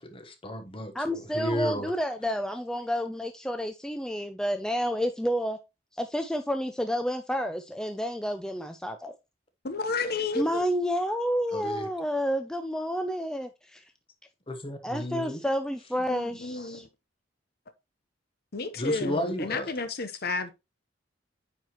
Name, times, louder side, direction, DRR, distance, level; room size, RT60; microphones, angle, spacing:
voice 1, 0.0-1.9 11.5-11.9 14.5-15.4 18.8-19.7, left 1 dB, 30° left, 1.1 m, -33 dB
voice 2, 0.9-5.6 5.9-9.1 10.4-13.8 14.8-16.9, equal, 5° left, 0.4 m, -30 dB
voice 3, 9.6-10.6 16.1-16.9 18.5-20.5, left 3 dB, 55° left, 0.9 m, -31 dB
8.9 x 4.6 x 3.0 m
head